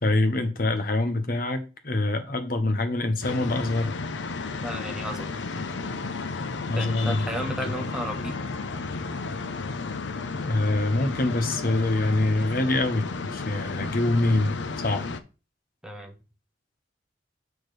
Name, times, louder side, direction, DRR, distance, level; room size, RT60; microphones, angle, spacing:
voice 1, 0.0-4.0 6.7-7.2 7.6-7.7 10.4-14.6 14.8-15.1, left 2 dB, 50° left, 1.2 m, -25 dB
sound 1, 3.2-15.2, left 4 dB, 80° left, 0.7 m, -33 dB
voice 2, 4.6-5.4 6.7-8.4 15.8-16.1, equal, 5° right, 1.1 m, -34 dB
7.2 x 6.3 x 3.3 m
head